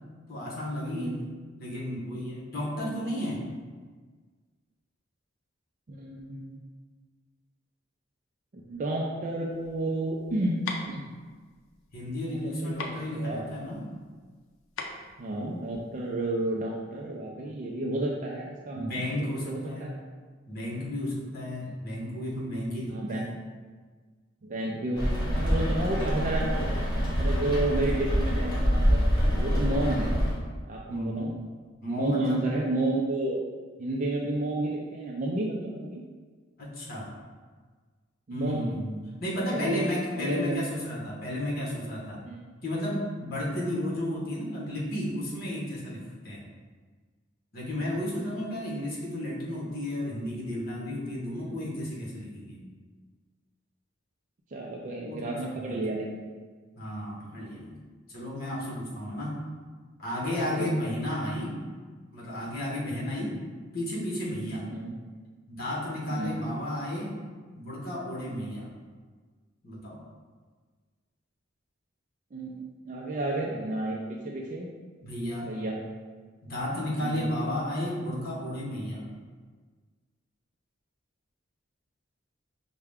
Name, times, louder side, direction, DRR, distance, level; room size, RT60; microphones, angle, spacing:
voice 1, 0.3-1.2 1.6-3.4 11.9-13.8 18.7-19.9 20.5-23.3 30.9-31.4 31.8-32.4 36.6-37.1 38.3-42.2 42.6-46.4 47.5-52.6 55.1-55.8 56.8-57.8 58.1-59.4 60.0-61.6 62.1-63.4 63.7-64.7 65.5-67.2 67.5-68.7 69.6-70.0 75.0-75.6 76.4-79.1, left 1 dB, 50° left, -5 dB, 1.2 m, -33 dB
voice 2, 5.9-6.6 8.7-10.6 10.9-11.0 12.3-12.9 13.2-13.4 15.2-18.9 19.2-20.0 21.7-21.8 22.9-23.2 24.4-29.0 29.4-30.1 30.7-31.3 31.9-33.4 33.8-36.0 38.3-38.7 39.5-40.7 42.3-42.4 51.4-51.6 54.5-56.2 60.3-60.7 63.2-63.4 64.7-64.9 66.1-66.4 72.3-74.7 75.4-75.8 77.0-77.3, right 2 dB, 40° right, -2 dB, 0.4 m, -31 dB
sound 1, 9.5-16.1, left 3 dB, 85° left, 0.5 m, -41 dB
Rain, 24.9-30.3, equal, 20° left, 1.3 m, -26 dB
5.7 x 2.2 x 3.5 m, 1.5 s
head